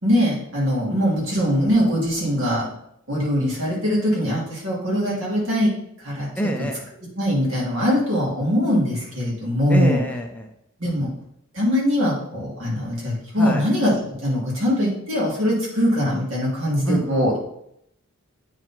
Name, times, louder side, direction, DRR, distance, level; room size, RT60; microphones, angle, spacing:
voice 1, 0.0-2.7 3.1-5.7 6.0-6.3 7.2-10.0 10.8-11.1 11.5-17.4, equal, 65° right, -5 dB, 3.0 m, -22 dB
voice 2, 6.4-6.9 9.7-10.5 13.4-13.6 16.8-17.3, right 1 dB, 5° left, 2 dB, 0.6 m, -26 dB
8.7 x 4.1 x 4.5 m, 0.74 s
head